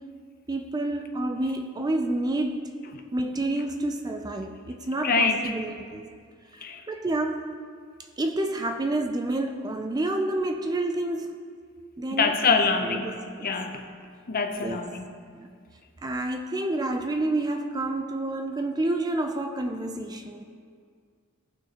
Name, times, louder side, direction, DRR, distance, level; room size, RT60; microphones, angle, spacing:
voice 1, 0.5-2.8 3.1-6.1 6.9-7.6 8.2-11.4 12.0-13.5 14.6-14.8 15.4-15.5 16.0-20.4, right 2 dB, 20° right, 5 dB, 0.3 m, -29 dB
voice 2, 5.0-5.5 6.6-6.8 12.1-13.9 14.3-15.1, left 4 dB, 40° left, 5 dB, 0.7 m, -25 dB
16.5 x 6.1 x 2.9 m, 2.1 s
head